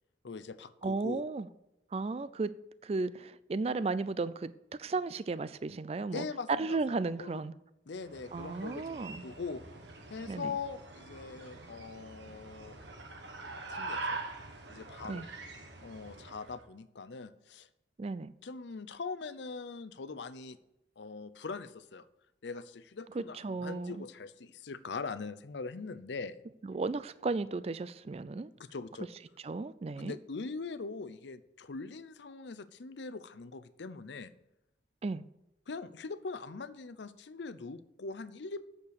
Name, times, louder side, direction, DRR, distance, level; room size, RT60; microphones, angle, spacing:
voice 1, 0.2-1.2 6.1-6.8 7.2-7.4 7.9-9.6 10.1-12.8 13.7-14.2 14.7-15.2 15.8-17.7 18.4-20.6 21.0-22.1 22.4-26.4 28.6-29.1 30.0-34.3 35.7-38.6, left 4 dB, 75° left, 0.6 m, -42 dB
voice 2, 0.8-1.5 1.9-2.5 2.8-4.5 4.8-7.5 8.3-9.2 10.3-10.5 15.1-15.3 18.0-18.3 23.2-24.0 26.6-28.5 29.4-30.2 35.0-35.2, right 3 dB, 35° right, 0.3 m, -34 dB
sound 1, 8.0-16.6, right 3 dB, 80° right, 1.5 m, -44 dB
8.3 x 6.7 x 6.5 m
head